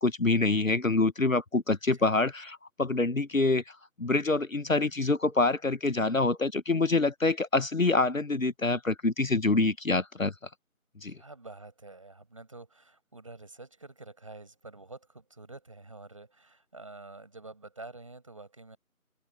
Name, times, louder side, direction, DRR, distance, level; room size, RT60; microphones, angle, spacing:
voice 1, 0.0-10.3 11.0-11.2, left 3 dB, 65° left, 1.1 m, -26 dB
voice 2, 11.1-18.8, right 2 dB, 20° right, 7.0 m, -48 dB
figure-of-eight pair, 170°, 43 cm